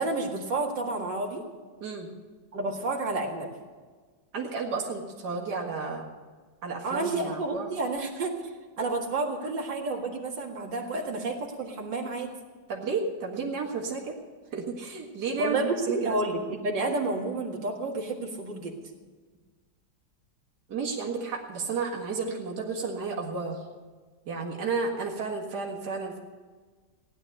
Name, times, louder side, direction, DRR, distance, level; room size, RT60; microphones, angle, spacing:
voice 1, 0.0-1.4 2.5-3.5 6.8-8.3 8.8-12.3 15.4-18.8, right 2 dB, 85° right, -1 dB, 2.5 m, -30 dB
voice 2, 1.8-2.1 4.3-6.1 6.6-7.7 12.7-14.2 14.5-16.2 20.7-23.6 24.3-26.2, right 4 dB, 70° right, -1 dB, 2.4 m, -32 dB
17.0 x 11.0 x 6.6 m, 1.4 s
omnidirectional pair, 1.9 m